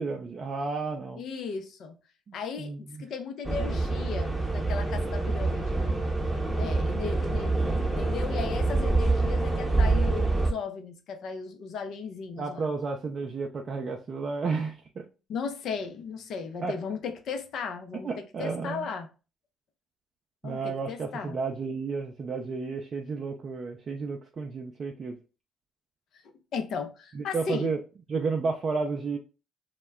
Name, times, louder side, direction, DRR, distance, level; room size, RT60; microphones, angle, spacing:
voice 1, 0.0-1.2 2.3-3.1 12.4-15.1 16.6-16.8 18.0-18.9 20.4-25.2 27.1-27.8 28.1-29.2, right 4 dB, 45° right, 0.4 m, -32 dB
voice 2, 1.2-2.0 2.3-5.8 6.5-12.7 15.3-19.1 20.4-21.4 26.2-27.8, left 5 dB, 65° left, 0.5 m, -36 dB
sound 1, 3.4-10.5, right 2 dB, 10° right, 0.7 m, -26 dB
2.2 x 2.1 x 3.4 m
hypercardioid pair, 60°, 0 cm